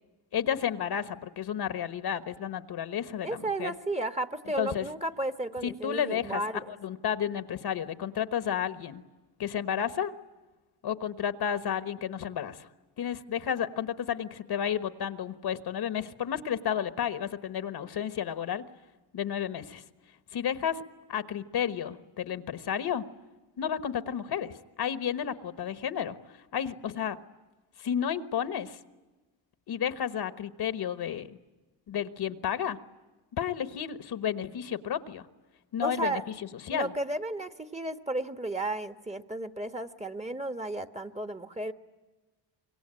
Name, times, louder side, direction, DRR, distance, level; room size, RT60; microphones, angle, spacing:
voice 1, 0.3-3.7 4.6-4.9 5.6-9.0 9.4-10.1 10.8-12.7 13.0-18.6 19.1-19.8 20.3-20.8 21.1-23.0 23.6-27.2 27.8-28.8 29.7-31.3 31.9-32.8 33.3-35.3 35.7-36.9, left 9 dB, 60° left, 11 dB, 1.3 m, -32 dB
voice 2, 3.2-6.6 35.8-36.2 36.7-41.7, right 2 dB, 15° right, 9 dB, 1.3 m, -33 dB
26.0 x 23.0 x 9.0 m, 1.2 s
cardioid pair, 85°, 44 cm